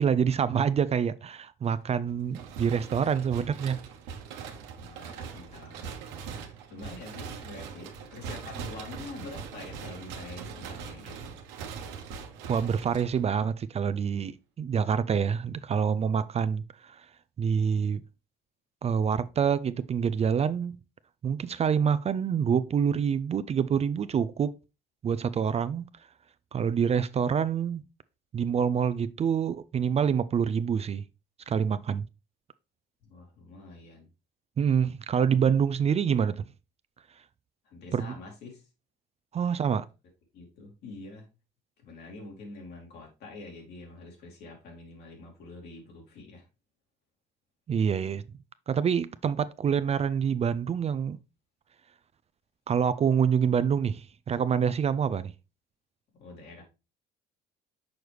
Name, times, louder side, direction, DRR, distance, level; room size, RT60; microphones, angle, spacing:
voice 1, 0.0-3.8 12.5-17.1 17.4-18.0 18.8-20.8 21.2-24.5 25.0-25.9 26.5-27.8 28.3-31.0 31.5-32.0 34.6-36.5 37.9-38.1 39.3-39.8 47.7-48.2 48.7-51.2 52.7-55.3, right 7 dB, 35° right, 0.4 m, -26 dB
sound 1, 2.3-13.5, right 6 dB, 85° right, 1.0 m, -41 dB
voice 2, 4.8-11.4 33.0-34.1 37.6-38.7 40.3-41.3 41.8-46.5 56.2-56.6, left 3 dB, 70° left, 2.6 m, -46 dB
6.4 x 4.6 x 3.3 m
supercardioid pair, 75°, 18 cm